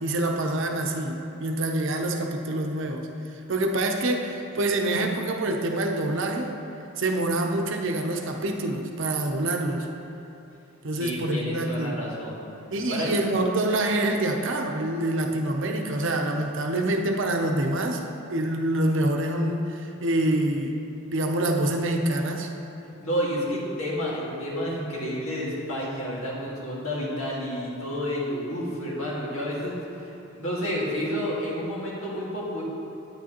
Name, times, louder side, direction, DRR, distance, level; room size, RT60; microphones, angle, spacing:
voice 1, 0.0-3.1 3.5-6.5 7.0-9.9 10.8-12.0 12.7-18.0 18.3-20.8 21.1-22.5, right 1 dB, 65° right, 3 dB, 0.7 m, -26 dB
voice 2, 11.0-12.4 12.9-13.1 22.8-32.6, equal, 90° left, -5 dB, 2.0 m, -30 dB
9.1 x 8.8 x 3.0 m, 2.8 s
head